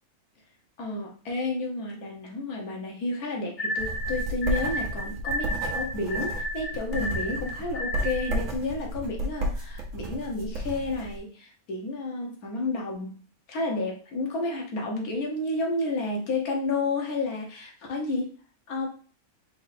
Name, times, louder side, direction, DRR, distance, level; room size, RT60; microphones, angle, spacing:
voice 1, 0.8-13.2 13.5-18.3 18.7-18.9, left 2 dB, 80° left, 0 dB, 1.5 m, -31 dB
sound 1, 3.6-8.5, left 1 dB, 40° left, 0.8 m, -32 dB
sound 2, 3.8-11.2, right 1 dB, 65° right, 1.2 m, -33 dB
4.4 x 2.6 x 4.1 m, 0.38 s
omnidirectional pair, 1.5 m